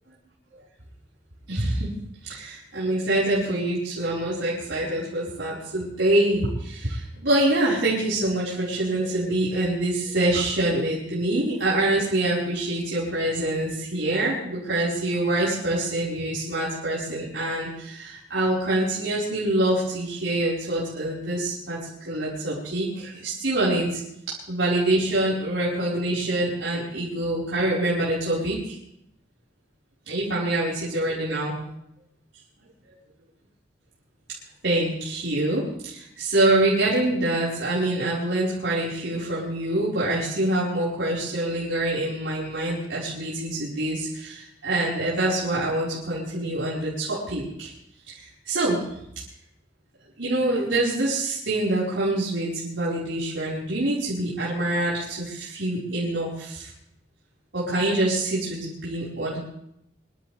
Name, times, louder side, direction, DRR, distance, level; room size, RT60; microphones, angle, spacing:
voice 1, 1.5-1.9 2.2-24.0 24.5-28.7 30.1-31.5 34.6-47.7 48.1-48.8 50.2-56.7 57.5-59.4, right 1 dB, 90° right, -8 dB, 5.1 m, -25 dB
24.5 x 13.5 x 3.5 m, 0.78 s
head